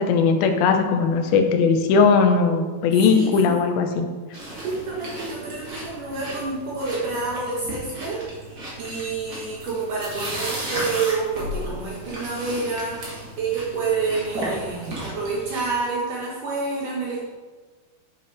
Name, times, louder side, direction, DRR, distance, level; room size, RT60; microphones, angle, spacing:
voice 1, 0.0-4.1, left 5 dB, 80° left, 5 dB, 2.7 m, -19 dB
voice 2, 3.1-3.5 4.6-8.3 8.8-13.1 13.4-17.3, right 4 dB, 65° right, -4 dB, 2.7 m, -28 dB
sound 1, 4.3-15.7, right 1 dB, 35° right, 2.7 m, -34 dB
10.5 x 7.3 x 4.1 m, 1.4 s
omnidirectional pair, 4.2 m